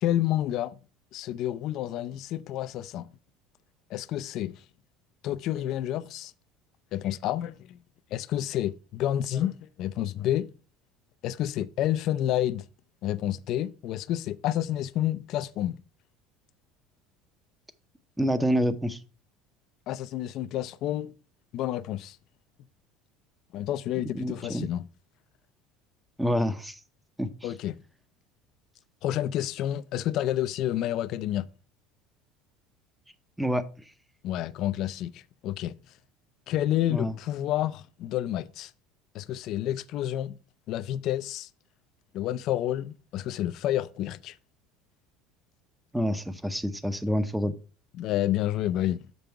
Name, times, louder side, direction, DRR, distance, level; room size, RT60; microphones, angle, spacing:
voice 1, 0.0-0.8 1.1-3.1 3.9-4.6 5.2-6.3 6.9-7.8 8.1-10.5 11.2-12.6 13.0-15.8 19.9-21.1 21.5-22.2 23.5-24.9 27.4-27.8 29.0-31.5 34.2-35.8 36.5-38.7 39.1-40.4 40.7-41.5 42.1-44.3 48.0-49.1, left 12 dB, 60° left, 0.4 m, -29 dB
voice 2, 18.2-19.0 24.1-24.7 26.2-26.8 27.2-27.3 33.4-33.6 36.9-37.1 45.9-47.5, equal, 5° right, 0.7 m, -27 dB
6.8 x 5.3 x 4.5 m
supercardioid pair, 105°, 0 cm